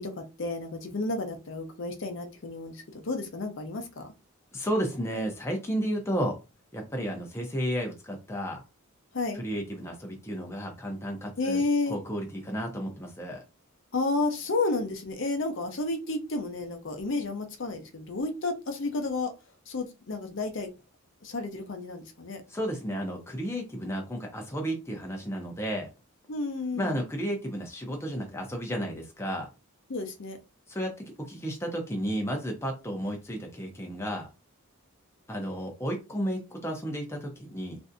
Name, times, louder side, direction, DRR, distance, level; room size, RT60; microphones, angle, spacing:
voice 1, 0.0-4.1 9.1-9.4 11.4-12.0 13.9-19.3 19.7-20.7 21.2-22.4 26.3-27.0 29.9-30.4, left 3 dB, 55° left, 6 dB, 0.6 m, -31 dB
voice 2, 4.5-6.4 6.7-8.6 9.3-11.6 11.9-13.4 22.5-25.9 26.7-29.5 30.7-30.9 31.2-34.3 35.3-37.8, equal, 10° left, 1 dB, 0.5 m, -32 dB
3.2 x 2.6 x 2.5 m, 0.27 s
head